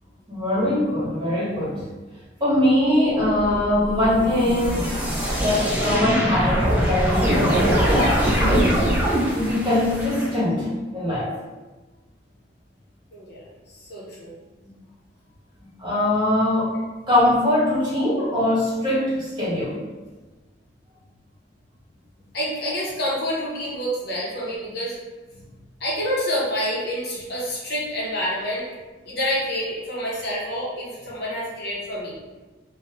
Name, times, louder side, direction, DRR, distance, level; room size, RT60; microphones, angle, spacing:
voice 1, 0.3-1.8 2.4-4.9 5.4-8.9 9.3-11.3 14.0-14.1 15.8-16.7 17.1-19.8, left 1 dB, 25° right, -8 dB, 1.1 m, -22 dB
sound 1, 3.2-10.3, equal, 10° right, 0.5 m, -23 dB
voice 2, 13.1-14.3 22.3-25.0 25.8-28.7 29.1-32.1, equal, 60° left, -5 dB, 0.8 m, -28 dB
2.7 x 2.1 x 2.8 m, 1.2 s
head